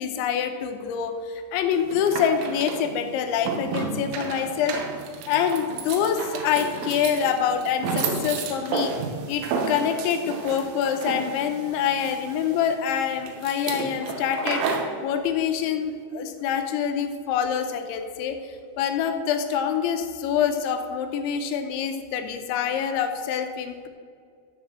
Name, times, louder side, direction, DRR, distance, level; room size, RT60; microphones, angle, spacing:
voice 1, 0.0-4.8 5.3-8.9 9.3-14.6 15.0-18.4 18.8-23.9, left 8 dB, 80° left, 7 dB, 3.2 m, -26 dB
sound 1, 1.7-15.0, right 4 dB, 80° right, 3.6 m, -32 dB
13.5 x 6.0 x 7.4 m, 2.1 s
omnidirectional pair, 5.5 m